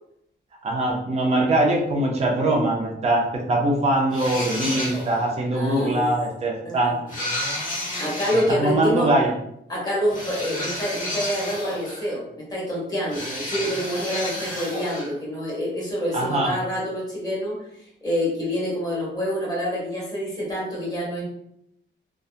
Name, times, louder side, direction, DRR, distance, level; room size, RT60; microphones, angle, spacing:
voice 1, 0.6-7.0 8.5-9.3 16.1-16.5, right 1 dB, 35° right, -2 dB, 0.5 m, -22 dB
sound 1, 4.1-5.3 7.1-8.5 10.1-12.1 13.1-15.1, left 1 dB, 45° left, 1.1 m, -31 dB
voice 2, 5.5-6.1 6.6-6.8 8.0-9.1 9.7-17.5 18.0-21.2, equal, 20° left, -6 dB, 1.1 m, -27 dB
2.7 x 2.3 x 2.4 m, 0.75 s
wide cardioid pair, 160°, 19 cm